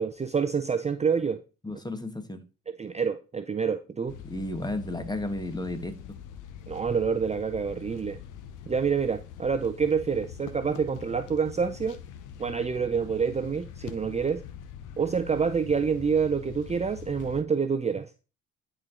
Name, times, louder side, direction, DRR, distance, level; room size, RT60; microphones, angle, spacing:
voice 1, 0.0-1.4 2.7-4.2 6.7-8.2 8.7-12.0 12.4-14.4 15.0-18.1, right 6 dB, 20° right, 0.5 m, -27 dB
voice 2, 1.6-2.4 4.2-6.0, left 1 dB, 15° left, 1.2 m, -33 dB
sound 1, 4.1-17.4, left 9 dB, 90° left, 0.9 m, -44 dB
10.5 x 4.5 x 3.7 m
cardioid pair, 90°, 30 cm